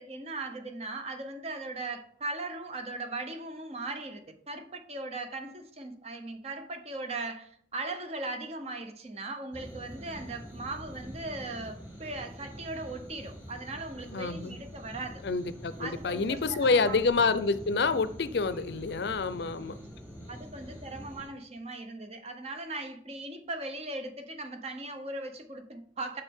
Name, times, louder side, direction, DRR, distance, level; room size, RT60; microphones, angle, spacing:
voice 1, 0.0-4.2 4.5-15.2 15.8-17.0 20.3-26.2, right 2 dB, 35° right, 0.7 m, -38 dB
sound 1, 9.5-21.3, equal, 15° right, 2.6 m, -45 dB
voice 2, 14.1-14.6 15.2-19.8, left 4 dB, 60° left, 0.5 m, -28 dB
7.2 x 6.2 x 3.6 m
head